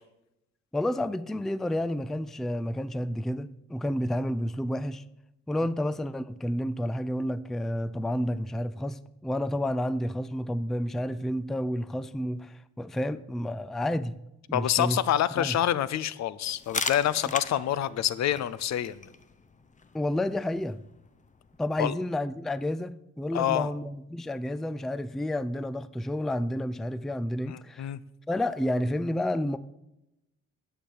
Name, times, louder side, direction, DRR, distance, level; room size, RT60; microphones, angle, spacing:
voice 1, 0.7-5.0 5.5-14.2 14.5-15.0 15.4-15.6 19.9-20.8 21.6-27.9 28.3-29.6, left 1 dB, ahead, 0.3 m, -30 dB
voice 2, 14.5-19.0 21.8-21.9 23.3-23.7 27.5-28.0, left 11 dB, 65° left, 0.6 m, -27 dB
sound 1, 16.4-21.9, left 4 dB, 25° left, 0.7 m, -39 dB
10.0 x 6.8 x 6.8 m
cardioid pair, 90°, 30 cm